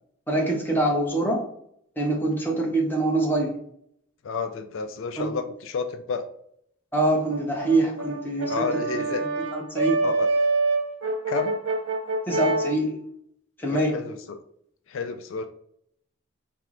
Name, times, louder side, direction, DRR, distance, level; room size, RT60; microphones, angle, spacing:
voice 1, 0.3-1.4 2.0-3.6 5.2-5.3 6.9-8.6 8.9-9.3 9.5-10.0 12.3-13.0 13.6-14.0, right 2 dB, 10° left, -1 dB, 0.7 m, -24 dB
voice 2, 4.2-6.3 8.5-9.2 10.0-10.3 11.3-11.6 13.7-14.4 14.9-15.5, left 5 dB, 75° left, 7 dB, 0.4 m, -30 dB
Brass instrument, 7.3-12.8, right 3 dB, 75° right, 0.7 m, -26 dB
4.3 x 2.0 x 3.7 m, 0.68 s
head